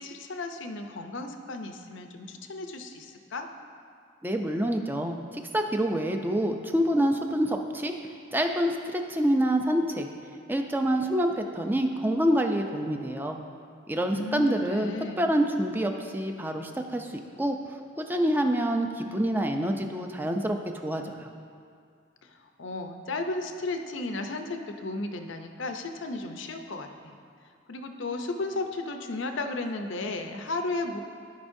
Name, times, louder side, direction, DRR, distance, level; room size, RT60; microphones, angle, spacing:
voice 1, 0.0-3.5 14.1-15.3 22.2-27.1 27.7-31.0, left 2 dB, 65° left, 6 dB, 0.6 m, -34 dB
voice 2, 4.2-7.9 8.3-10.1 10.5-13.4 13.9-17.1 17.4-20.6 20.8-21.3, right 1 dB, 10° right, 4 dB, 0.5 m, -27 dB
15.5 x 5.3 x 2.6 m, 2.4 s
head